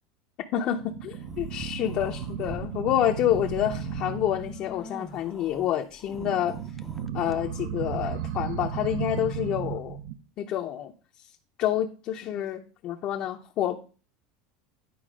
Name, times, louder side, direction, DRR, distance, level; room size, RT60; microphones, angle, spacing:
voice 1, 0.5-6.6 7.1-10.0 10.4-10.9 11.6-13.8, left 11 dB, 40° left, 0.6 m, -28 dB
sound 1, 0.8-4.8 6.1-10.1, right 8 dB, 70° right, 0.7 m, -35 dB
sound 2, 1.1-2.7 3.1-7.3, left 1 dB, 5° left, 0.5 m, -44 dB
9.3 x 4.6 x 5.0 m
supercardioid pair, 145°, 2 cm